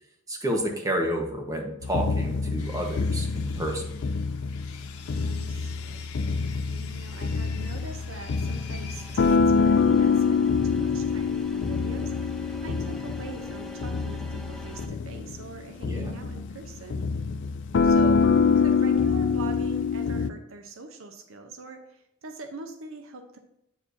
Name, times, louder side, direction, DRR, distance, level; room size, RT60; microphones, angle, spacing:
voice 1, 0.3-4.0 15.8-16.1, equal, 15° right, 1 dB, 1.2 m, -30 dB
sound 1, 1.8-20.3, left 5 dB, 55° left, 0.4 m, -25 dB
Sawing, 2.6-9.4, left 8 dB, 85° left, 1.1 m, -47 dB
voice 2, 5.0-17.0 17.8-18.2 18.6-23.4, right 3 dB, 65° right, 6 dB, 0.8 m, -43 dB
sound 2, 7.1-14.9, equal, ahead, 0.6 m, -45 dB
8.5 x 7.1 x 2.7 m, 0.84 s
head